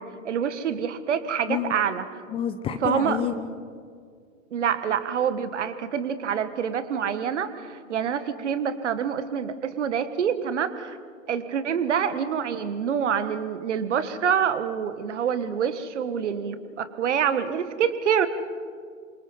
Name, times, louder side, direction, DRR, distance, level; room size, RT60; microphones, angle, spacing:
voice 1, 0.0-2.0 2.8-3.2 4.5-11.0 11.3-18.3, right 7 dB, 55° right, 12 dB, 1.6 m, -26 dB
voice 2, 1.5-1.8 2.3-3.5, left 9 dB, 15° left, 10 dB, 0.6 m, -29 dB
29.0 x 25.5 x 4.2 m, 2.1 s
figure-of-eight pair, 105°, 41 cm